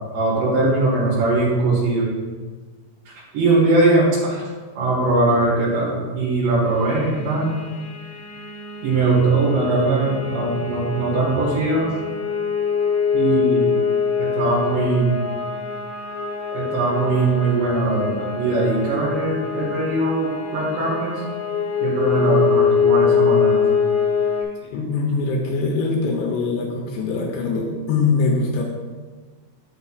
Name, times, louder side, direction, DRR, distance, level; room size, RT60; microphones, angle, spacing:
voice 1, 0.1-2.1 3.3-4.5 4.8-7.6 8.8-11.9 13.1-13.7 14.2-15.1 16.5-21.2 21.8-23.7, right 2 dB, 75° right, -8 dB, 3.9 m, -20 dB
sound 1, 6.8-24.4, left 6 dB, 60° left, 2.1 m, -24 dB
voice 2, 24.7-28.6, left 4 dB, 80° left, 0 dB, 2.8 m, -22 dB
9.8 x 7.8 x 2.4 m, 1.4 s
omnidirectional pair, 5.0 m